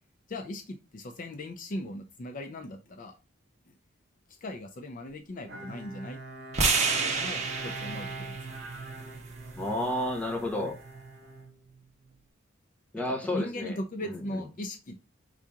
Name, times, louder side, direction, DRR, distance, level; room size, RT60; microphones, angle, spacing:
voice 1, 0.3-3.1 4.4-6.2 6.9-8.4 13.1-15.0, left 1 dB, 40° left, 0.5 m, -38 dB
Bowed string instrument, 5.5-12.2, right 3 dB, 55° right, 1.5 m, -44 dB
sound 1, 6.5-10.7, right 4 dB, 35° right, 1.0 m, -31 dB
voice 2, 9.6-10.8 12.9-14.4, left 1 dB, 5° left, 0.9 m, -32 dB
4.8 x 2.8 x 3.6 m
head